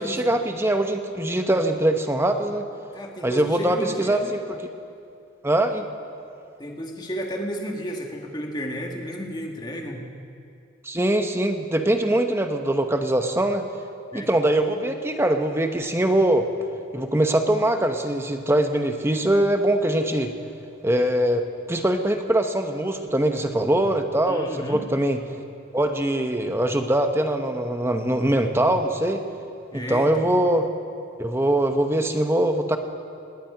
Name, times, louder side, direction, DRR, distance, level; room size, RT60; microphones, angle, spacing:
voice 1, 0.0-2.7 3.2-4.4 5.4-5.8 10.8-13.6 14.1-16.5 16.9-20.3 20.8-25.2 25.7-29.2 29.7-30.7 31.2-32.8, right 1 dB, 15° right, 6 dB, 0.9 m, -22 dB
voice 2, 2.9-4.3 6.6-10.1 14.1-14.3 24.3-24.8 29.7-30.2, equal, 20° left, 1 dB, 1.6 m, -32 dB
19.5 x 7.4 x 9.5 m, 2.5 s
head